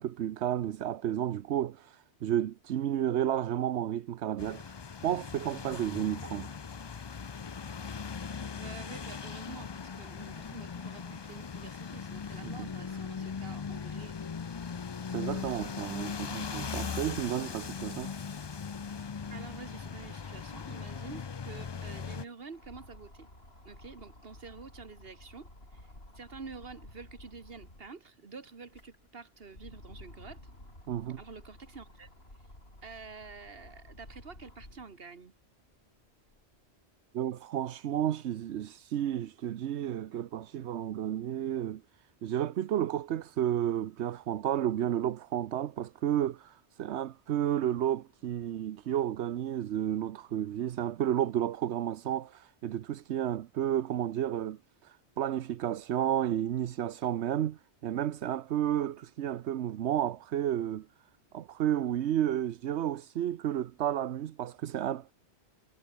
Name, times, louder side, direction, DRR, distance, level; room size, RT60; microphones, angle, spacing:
voice 1, 0.0-4.8 5.0-6.5 12.4-12.7 15.1-18.1 30.9-31.2 37.1-41.8 42.2-60.9 61.3-65.1, right 11 dB, 85° right, 1.0 m, -32 dB
sound 1, 4.4-22.2, left 6 dB, 40° left, 0.4 m, -39 dB
voice 2, 8.5-14.1 15.8-16.2 19.3-23.3 23.7-25.9 26.2-30.4 31.1-32.1 32.8-35.3 58.8-59.0, right 4 dB, 60° right, 2.0 m, -48 dB
sound 2, 20.3-28.0 28.5-35.0 35.5-36.6, left 1 dB, 65° left, 7.6 m, -53 dB
omnidirectional pair, 1.1 m